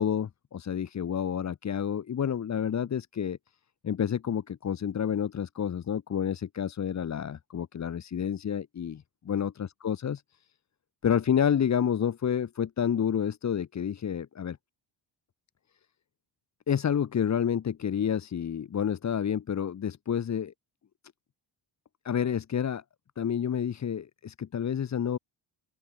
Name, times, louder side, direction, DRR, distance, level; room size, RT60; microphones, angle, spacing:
voice 1, 0.0-3.4 3.8-10.2 11.0-14.6 16.7-20.5 22.0-22.8 23.2-25.2, left 8 dB, 35° left, 1.2 m, -29 dB
open air
wide cardioid pair, 160°, 46 cm